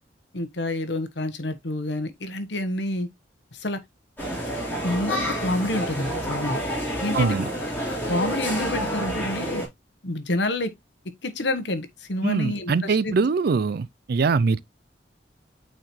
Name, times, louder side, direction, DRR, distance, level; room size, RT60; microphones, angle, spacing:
voice 1, 0.3-3.1 3.5-3.8 4.8-6.6 7.0-7.3 7.9-9.6 10.0-10.7 11.2-13.1, left 1 dB, 70° left, 1.3 m, -28 dB
sound 1, 4.2-9.7, equal, 10° left, 3.6 m, -28 dB
voice 2, 7.1-7.4 12.2-14.6, right 4 dB, 55° right, 0.4 m, -22 dB
8.7 x 4.4 x 3.1 m
head